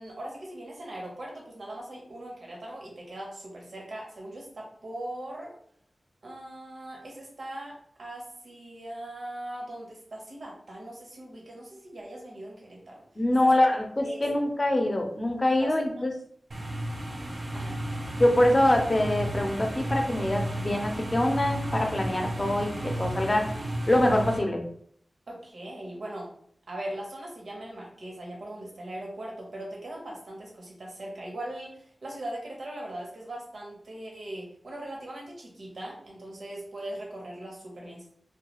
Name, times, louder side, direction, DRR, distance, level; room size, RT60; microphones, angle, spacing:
voice 1, 0.0-5.5 6.2-13.0 13.4-13.5 14.0-14.2 15.6-16.1 17.5-17.8 25.3-26.3 26.7-38.0, right 1 dB, 90° right, -2 dB, 0.8 m, -40 dB
voice 2, 13.2-16.1 18.2-23.5 23.9-24.6, left 1 dB, 35° left, 3 dB, 0.5 m, -24 dB
sound 1, 16.5-24.4, right 1 dB, 55° right, 0.6 m, -33 dB
2.3 x 2.2 x 2.9 m, 0.63 s
wide cardioid pair, 65°, 0 cm